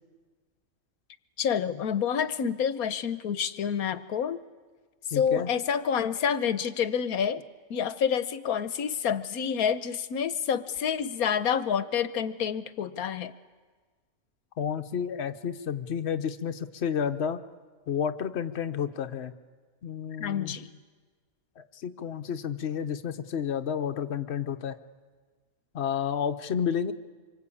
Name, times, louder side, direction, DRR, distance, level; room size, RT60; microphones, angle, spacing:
voice 1, 1.4-4.4 5.1-7.4 7.7-13.3 20.2-20.7, left 7 dB, 90° left, 13 dB, 1.4 m, -28 dB
voice 2, 5.1-5.5 14.6-17.4 17.9-19.3 19.8-20.5 21.6-24.8 25.7-26.9, left 7 dB, 55° left, 8 dB, 1.1 m, -31 dB
26.0 x 23.5 x 8.6 m, 1.4 s
omnidirectional pair, 1.5 m